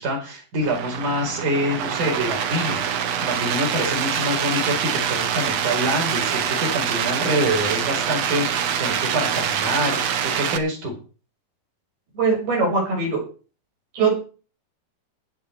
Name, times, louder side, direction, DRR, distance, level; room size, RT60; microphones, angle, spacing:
voice 1, 0.0-10.9, right 1 dB, 50° right, 1 dB, 6.1 m, -26 dB
sound 1, 0.6-10.6, right 8 dB, 80° right, 1.4 m, -25 dB
voice 2, 12.1-13.2 13.9-14.2, right 4 dB, 65° right, 0 dB, 7.8 m, -21 dB
17.0 x 10.0 x 4.7 m, 0.36 s
omnidirectional pair, 4.7 m